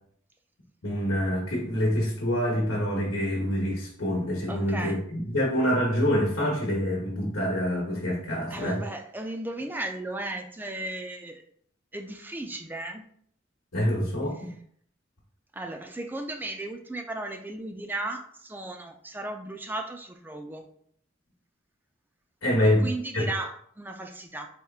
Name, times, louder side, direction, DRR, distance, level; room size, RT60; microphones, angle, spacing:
voice 1, 0.8-8.8 13.7-14.5 22.4-22.9 23.1-23.2, equal, 75° left, -3 dB, 1.0 m, -26 dB
voice 2, 4.5-5.0 8.5-11.4 11.9-13.0 15.5-20.7 22.8-24.5, right 2 dB, 10° right, 4 dB, 0.3 m, -35 dB
4.3 x 3.5 x 2.4 m, 0.63 s
head